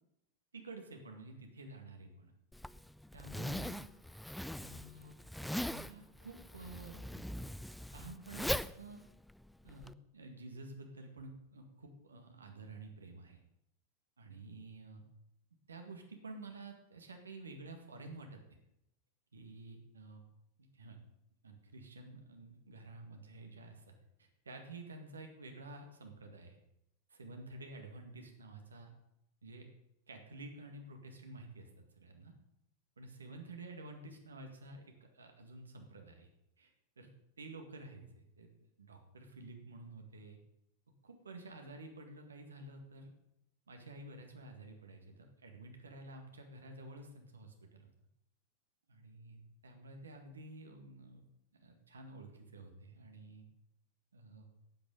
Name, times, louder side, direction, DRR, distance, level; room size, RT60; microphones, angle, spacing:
voice 1, 0.5-2.3 3.1-3.9 4.6-5.1 5.4-7.5 7.9-9.0 9.6-13.4 14.2-15.0 15.7-18.4 19.3-20.2 20.7-21.0 21.4-23.9 24.2-26.6 27.1-28.9 29.4-29.7 30.1-31.7 32.0-32.3 33.0-36.3 36.6-36.7 37.0-37.1 37.4-38.5 38.8-40.4 41.0-43.1 43.7-47.9 48.9-51.2 51.6-53.5 54.1-54.5, right 2 dB, 70° right, 4 dB, 2.0 m, -51 dB
Zipper (clothing), 2.5-9.9, left 1 dB, ahead, 0.3 m, -41 dB
11.5 x 9.0 x 5.5 m, 0.81 s
figure-of-eight pair, 90°, 0 cm